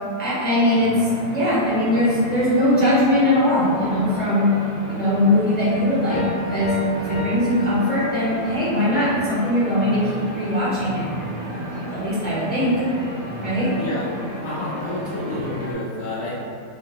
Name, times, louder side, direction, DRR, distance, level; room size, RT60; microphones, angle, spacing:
voice 1, 0.1-4.5 4.9-11.0 11.9-12.8 13.4-13.8, left 1 dB, 15° left, -11 dB, 0.4 m, -20 dB
sound 1, 0.7-15.7, equal, 65° right, 0.7 m, -33 dB
sound 2, 6.1-8.6, left 2 dB, 90° left, 1.2 m, -32 dB
voice 2, 13.8-14.1 14.4-16.3, left 2 dB, 70° left, -7 dB, 0.9 m, -29 dB
3.5 x 2.1 x 2.6 m, 2.3 s
omnidirectional pair, 1.6 m